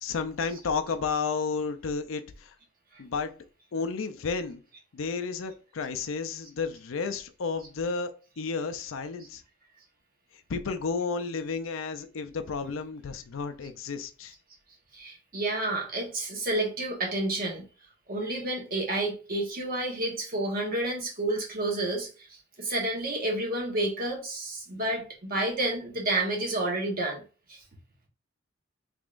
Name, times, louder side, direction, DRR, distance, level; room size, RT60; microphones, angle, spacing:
voice 1, 0.0-2.5 3.0-3.3 3.7-4.6 4.9-9.4 10.5-14.3, left 5 dB, 85° left, 0.5 m, -32 dB
voice 2, 14.9-17.7 18.1-22.1 22.6-27.2 27.5-27.6, right 2 dB, 50° right, 1.1 m, -30 dB
3.6 x 3.4 x 2.5 m
head